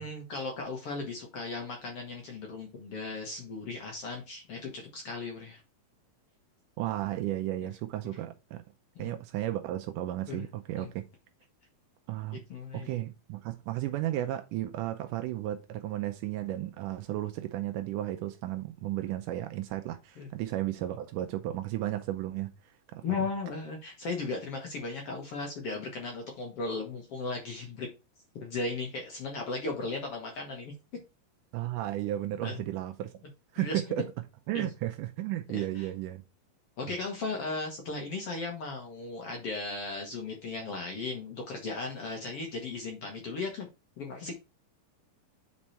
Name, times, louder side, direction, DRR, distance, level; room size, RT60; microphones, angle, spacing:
voice 1, 0.0-5.6 7.6-7.7 9.0-9.1 10.3-10.5 10.8-10.9 12.5-12.9 20.2-20.3 23.0-27.9 28.4-30.7 32.4-32.6 33.6-33.8 34.5-34.7 35.5-35.9 36.8-43.7 44.0-44.3, left 3 dB, 55° left, 1.8 m, -36 dB
voice 2, 6.8-8.6 9.0-11.0 12.1-12.4 12.7-23.0 31.5-33.1 33.5-34.0 34.5-36.2, right 14 dB, 80° right, 2.1 m, -34 dB
7.5 x 4.4 x 4.2 m
omnidirectional pair, 3.9 m